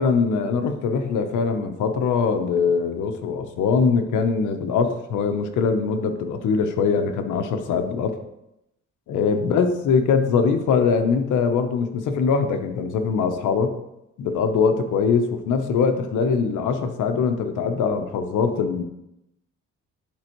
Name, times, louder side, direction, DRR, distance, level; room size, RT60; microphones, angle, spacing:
voice 1, 0.0-8.2 9.1-13.8 14.2-18.8, left 5 dB, 80° left, 7 dB, 0.9 m, -22 dB
10.5 x 4.3 x 3.1 m, 0.87 s
cardioid pair, 90°, 30 cm